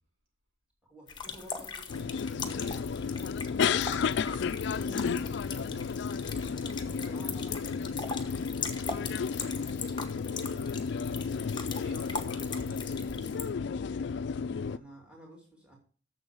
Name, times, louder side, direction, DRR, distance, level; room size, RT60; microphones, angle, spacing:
voice 1, 0.9-3.6 4.4-5.4 6.6-8.1 14.7-15.8, right 1 dB, 5° right, -1 dB, 2.6 m, -51 dB
sound 1, 1.1-13.4, left 5 dB, 25° left, 1.0 m, -40 dB
sound 2, 1.9-14.8, left 6 dB, 60° left, 0.3 m, -32 dB
voice 2, 10.0-11.1 11.4-13.4, left 1 dB, 90° right, -2 dB, 4.7 m, -50 dB
7.0 x 6.8 x 7.1 m, 0.42 s
head